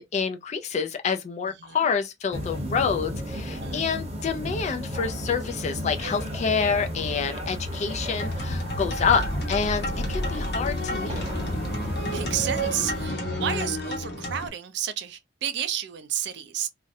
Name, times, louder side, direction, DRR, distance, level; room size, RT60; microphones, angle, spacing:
voice 1, 0.0-11.3, left 6 dB, 40° left, 0.3 m, -27 dB
sound 1, 2.3-13.1, equal, 35° right, 0.7 m, -33 dB
sound 2, 8.2-14.5, equal, 60° left, 0.9 m, -30 dB
voice 2, 8.7-9.1 12.0-16.7, right 10 dB, 65° right, 0.4 m, -31 dB
2.4 x 2.0 x 2.5 m
head